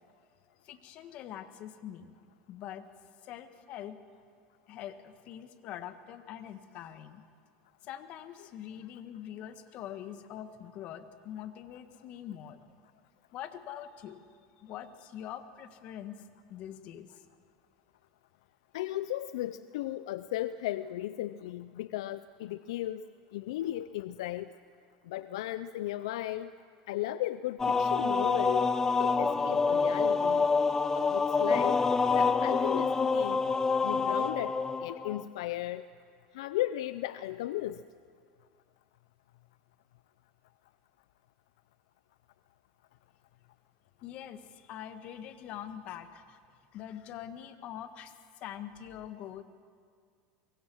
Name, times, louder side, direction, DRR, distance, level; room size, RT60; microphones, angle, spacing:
voice 1, 0.6-2.1 2.5-2.9 3.2-4.0 4.7-7.2 7.8-12.6 13.3-14.2 14.6-16.2 16.5-17.2 44.0-46.4 46.7-48.1 48.4-49.4, left 10 dB, 50° left, 9 dB, 1.6 m, -44 dB
voice 2, 18.7-23.0 23.3-24.5 25.1-26.5 26.9-30.5 30.9-31.8 32.1-33.4 33.8-34.6 34.8-35.9 36.3-37.8, left 14 dB, 80° left, 14 dB, 0.5 m, -35 dB
sound 1, 27.6-35.2, left 4 dB, 20° left, 0.9 m, -27 dB
23.5 x 23.0 x 6.3 m, 2.2 s
supercardioid pair, 115°, 3 cm